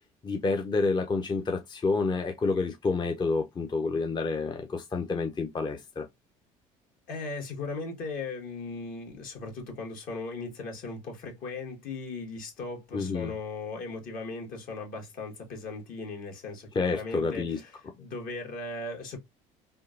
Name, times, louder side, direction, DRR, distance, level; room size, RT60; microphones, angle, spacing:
voice 1, 0.2-6.1 12.9-13.3 16.7-17.6, left 4 dB, 25° left, 0.6 m, -29 dB
voice 2, 7.1-17.7 18.0-19.2, left 3 dB, 60° left, 1.6 m, -38 dB
3.6 x 2.3 x 2.5 m
supercardioid pair, 90°, 16 cm